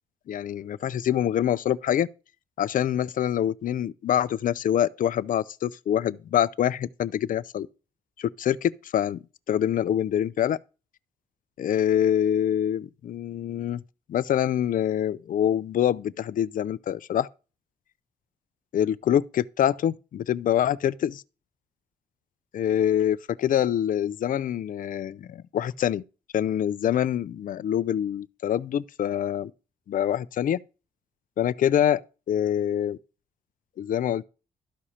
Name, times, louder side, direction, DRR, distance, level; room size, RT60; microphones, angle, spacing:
voice 1, 0.3-2.1 2.6-7.7 8.2-10.6 11.6-13.8 14.1-17.3 18.7-21.2 22.5-26.0 26.3-29.5 29.9-30.6 31.4-32.0 32.3-33.0 33.8-34.2, left 10 dB, 55° left, 0.4 m, -25 dB
12.5 x 4.7 x 2.9 m
supercardioid pair, 55°, 17 cm